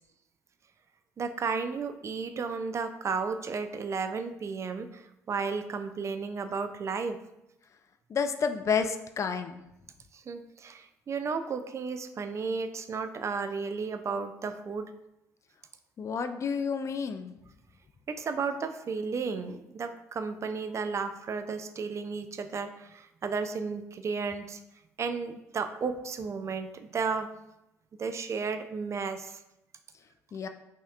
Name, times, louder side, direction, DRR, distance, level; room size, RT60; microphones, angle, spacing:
voice 1, 1.2-7.2 10.1-14.9 18.1-24.6 25.0-27.3 28.0-29.4, right 5 dB, 40° right, 9 dB, 0.4 m, -33 dB
voice 2, 8.1-9.6 16.0-17.3 30.3-30.5, left 6 dB, 40° left, 9 dB, 0.4 m, -30 dB
5.6 x 2.8 x 2.4 m, 0.88 s
hypercardioid pair, 55°, 8 cm